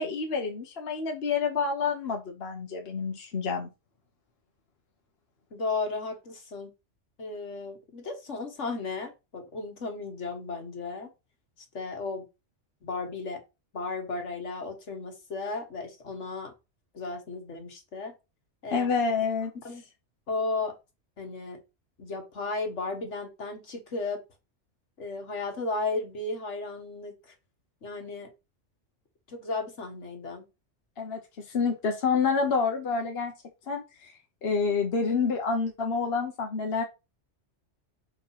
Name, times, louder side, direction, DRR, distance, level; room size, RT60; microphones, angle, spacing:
voice 1, 0.0-3.7 18.7-19.5 31.0-31.2 31.5-33.3 33.7-34.1 34.4-36.8, left 5 dB, 55° left, 2 dB, 1.3 m, -28 dB
voice 2, 5.5-6.7 7.2-11.1 11.7-12.3 12.8-13.4 13.7-16.5 16.9-18.1 18.6-18.9 19.6-19.8 20.3-20.8 21.2-21.6 22.0-24.2 25.0-27.3 27.8-28.3 29.3-30.5, left 3 dB, 75° left, 4 dB, 1.9 m, -34 dB
5.2 x 4.4 x 5.7 m, 0.26 s
omnidirectional pair, 1.2 m